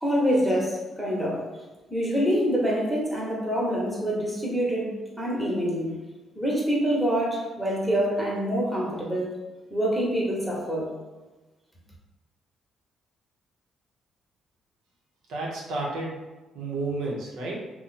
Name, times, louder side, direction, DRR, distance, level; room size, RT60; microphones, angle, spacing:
voice 1, 0.0-1.4 1.9-4.9 5.2-6.0 6.4-9.3 9.7-10.9, equal, ahead, -4 dB, 1.0 m, -26 dB
voice 2, 15.3-16.2 16.5-17.5, right 2 dB, 85° right, -3 dB, 0.8 m, -31 dB
2.8 x 2.2 x 4.1 m, 1.2 s
cardioid pair, 90°, 0 cm